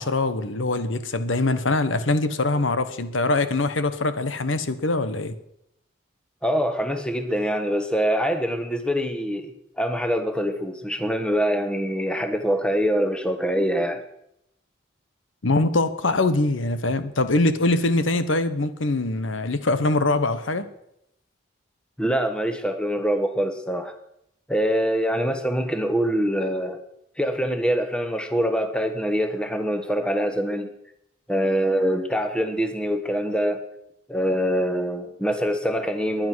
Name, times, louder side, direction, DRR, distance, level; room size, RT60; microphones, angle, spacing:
voice 1, 0.0-5.3 15.4-20.7, left 2 dB, 85° left, 1.1 m, -23 dB
voice 2, 6.4-14.0 22.0-23.9 24.5-26.8 27.2-30.7 31.3-33.6 34.1-36.3, equal, 5° left, 1.3 m, -24 dB
20.5 x 10.5 x 6.2 m
head